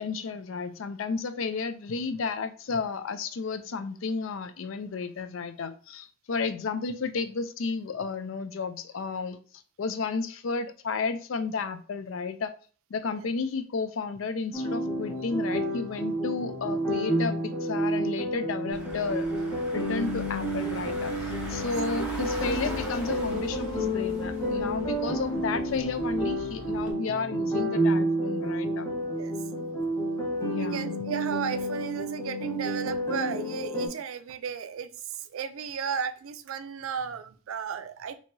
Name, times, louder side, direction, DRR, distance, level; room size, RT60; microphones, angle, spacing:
voice 1, 0.0-9.4 9.8-12.5 12.9-19.3 19.7-21.1 21.5-28.9 30.5-30.9, left 4 dB, 65° left, 10 dB, 0.4 m, -32 dB
sound 1, 14.5-33.9, right 1 dB, 15° left, 1.1 m, -30 dB
Car / Engine, 18.7-26.9, equal, 5° right, 0.9 m, -40 dB
voice 2, 30.5-38.2, right 7 dB, 80° right, 10 dB, 0.4 m, -35 dB
4.5 x 2.8 x 2.6 m, 0.41 s
head